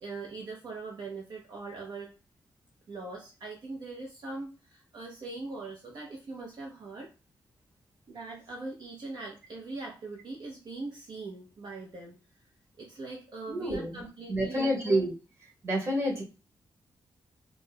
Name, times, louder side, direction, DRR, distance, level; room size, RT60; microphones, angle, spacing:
voice 1, 0.0-2.1 2.9-7.1 8.1-12.2 12.8-14.7, right 3 dB, 60° right, -1 dB, 0.7 m, -41 dB
voice 2, 13.5-15.1 15.4-16.2, right 1 dB, 30° right, -2 dB, 1.3 m, -29 dB
4.2 x 2.1 x 2.2 m, 0.32 s
wide cardioid pair, 125°, 8 cm